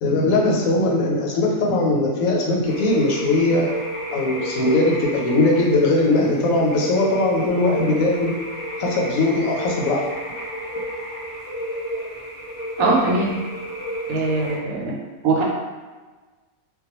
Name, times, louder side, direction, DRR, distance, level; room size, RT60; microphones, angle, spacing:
voice 1, 0.0-3.7 4.1-8.4 8.8-10.0, left 2 dB, 80° left, -1 dB, 1.0 m, -20 dB
sound 1, 2.6-14.6, equal, 55° left, 0.3 m, -31 dB
voice 2, 12.8-13.4 14.1-15.0 15.2-15.4, right 3 dB, 90° right, -1 dB, 1.0 m, -21 dB
2.2 x 2.1 x 2.9 m, 1.3 s
omnidirectional pair, 1.4 m